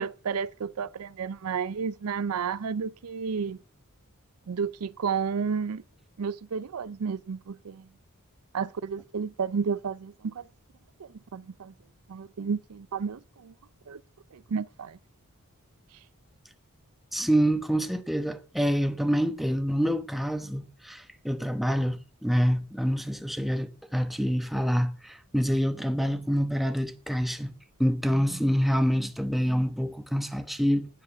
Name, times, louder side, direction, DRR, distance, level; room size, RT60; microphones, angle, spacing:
voice 1, 0.0-3.6 4.5-5.8 6.2-7.9 8.5-10.5 11.0-11.7 12.1-13.5 13.9-14.0 14.3-15.0, right 6 dB, 75° right, 0.5 m, -32 dB
voice 2, 17.1-27.5 27.8-30.9, equal, ahead, 1.0 m, -26 dB
10.0 x 7.3 x 9.2 m
head